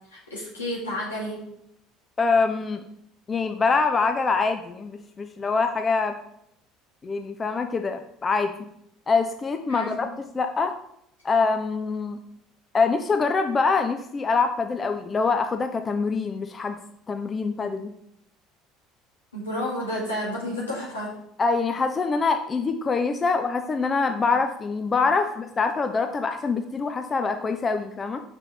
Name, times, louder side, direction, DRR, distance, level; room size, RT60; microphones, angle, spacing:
voice 1, 0.1-1.4 9.7-10.1 19.3-21.2, left 1 dB, 80° left, -5 dB, 2.6 m, -31 dB
voice 2, 2.2-2.8 3.3-6.2 7.0-8.5 9.1-10.1 10.3-10.7 11.2-12.2 12.7-16.8 17.1-17.9 21.4-28.2, left 4 dB, 25° left, 6 dB, 0.6 m, -24 dB
6.0 x 5.6 x 3.3 m, 0.76 s
figure-of-eight pair, 60°, 0 cm